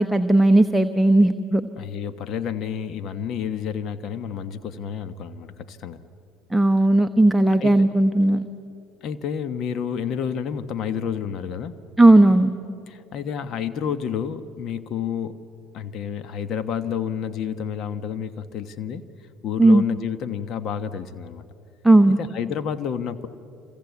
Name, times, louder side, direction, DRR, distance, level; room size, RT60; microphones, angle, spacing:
voice 1, 0.0-1.6 6.5-8.5 12.0-12.5 19.6-19.8 21.8-22.2, right 2 dB, 5° right, 7 dB, 1.0 m, -16 dB
voice 2, 1.8-6.0 7.6-7.9 9.0-11.8 12.9-15.4 15.7-19.0 19.4-21.5 22.2-23.3, left 8 dB, 55° left, 12 dB, 1.2 m, -30 dB
27.0 x 26.5 x 8.3 m, 2.6 s
supercardioid pair, 80°, 0 cm